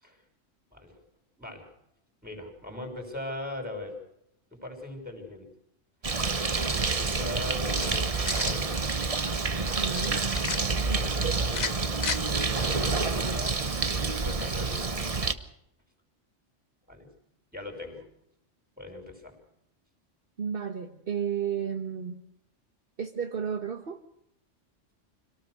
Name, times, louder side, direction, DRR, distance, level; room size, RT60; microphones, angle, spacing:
voice 1, 1.4-1.7 2.2-3.9 4.5-5.5 6.5-8.7 10.8-11.8 12.3-15.0 16.9-17.1 17.5-18.0 18.8-19.3, left 2 dB, 5° right, 3 dB, 6.1 m, -40 dB
Bird, 6.0-15.3, right 4 dB, 30° right, 1.0 m, -28 dB
sound 1, 7.8-8.6 10.0-10.6 11.5-12.2, left 5 dB, 40° left, 1.0 m, -33 dB
voice 2, 9.8-10.2 10.9-11.3 20.4-22.2 23.0-24.0, right 7 dB, 50° right, 5 dB, 1.5 m, -33 dB
26.0 x 18.5 x 6.5 m, 0.78 s
omnidirectional pair, 1.3 m